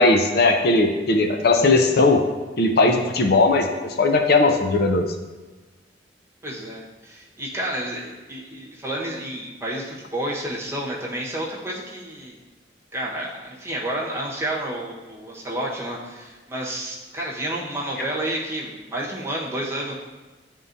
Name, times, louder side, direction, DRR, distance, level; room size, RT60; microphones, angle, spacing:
voice 1, 0.0-2.2 2.6-3.7 4.0-5.0, left 3 dB, 60° left, 4 dB, 0.6 m, -18 dB
voice 2, 6.4-12.3 12.9-19.9, right 1 dB, 15° right, -5 dB, 1.3 m, -30 dB
11.0 x 3.6 x 2.7 m, 1.3 s
head